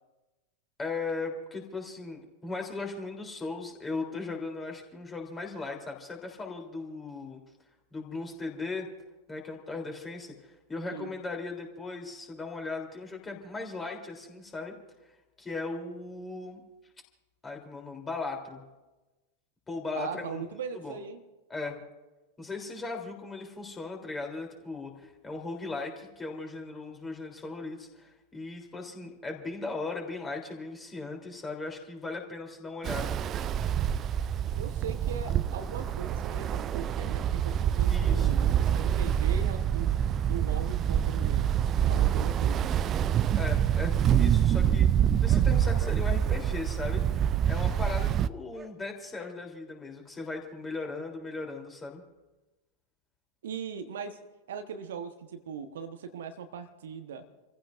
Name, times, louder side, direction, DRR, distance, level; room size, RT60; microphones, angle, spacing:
voice 1, 0.8-7.4 7.9-8.9 9.3-14.8 15.4-16.6 17.4-18.6 19.7-20.4 20.7-21.0 21.5-21.8 22.4-33.2 37.9-38.4 43.4-44.9 45.2-47.2 47.5-52.0, left 3 dB, 15° left, 2 dB, 3.3 m, -38 dB
voice 2, 19.9-21.2 34.5-39.9 40.3-41.5 41.9-42.6 53.4-54.2 54.5-57.3, right 6 dB, 60° right, 7 dB, 1.2 m, -39 dB
Ocean, 32.8-48.3, right 9 dB, 30° right, 0.4 m, -26 dB
sound 1, 45.2-45.5 45.8-46.0 46.2-46.5 48.5-48.7 49.2-49.4, right 2 dB, 10° right, 1.7 m, -49 dB
29.5 x 15.5 x 2.6 m, 1.1 s
figure-of-eight pair, 90°, 0 cm